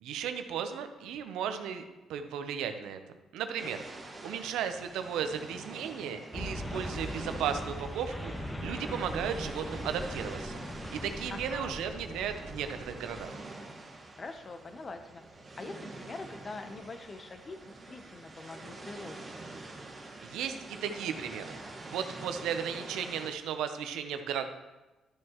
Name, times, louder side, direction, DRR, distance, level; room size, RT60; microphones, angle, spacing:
voice 1, 0.0-1.8 2.1-3.0 3.3-3.8 4.2-10.6 11.0-13.4 20.2-21.6 21.9-24.5, right 8 dB, 90° right, 8 dB, 0.7 m, -35 dB
sound 1, 3.6-23.3, right 2 dB, 35° right, 1.7 m, -46 dB
sound 2, 6.3-13.2, equal, 15° left, 1.3 m, -40 dB
voice 2, 11.3-11.8 14.2-15.2 15.6-19.2, left 3 dB, 35° left, 8 dB, 0.8 m, -44 dB
12.5 x 6.4 x 3.0 m, 1.1 s
cardioid pair, 90°, 0 cm